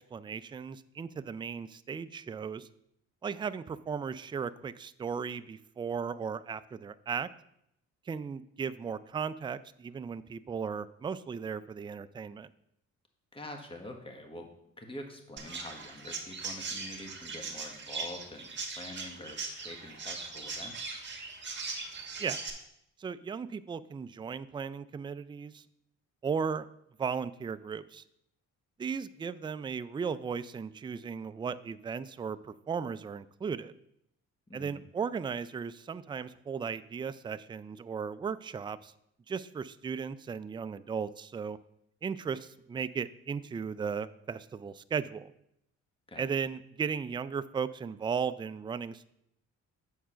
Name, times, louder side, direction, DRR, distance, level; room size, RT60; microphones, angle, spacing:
voice 1, 0.1-2.7 3.2-7.3 8.1-12.5 22.2-22.4 23.0-25.6 26.2-26.7 27.0-28.0 28.8-33.7 34.5-38.9 39.3-41.6 42.0-45.3 46.2-49.0, right 6 dB, 15° right, 14 dB, 0.3 m, -36 dB
voice 2, 13.3-14.5 14.8-21.0 34.5-34.8 46.1-46.3, left 1 dB, 20° left, 4 dB, 1.4 m, -46 dB
Chirp tweet, 15.4-22.5, right 4 dB, 40° right, 1.6 m, -40 dB
7.3 x 4.6 x 5.6 m, 0.76 s
cardioid pair, 90°, 30 cm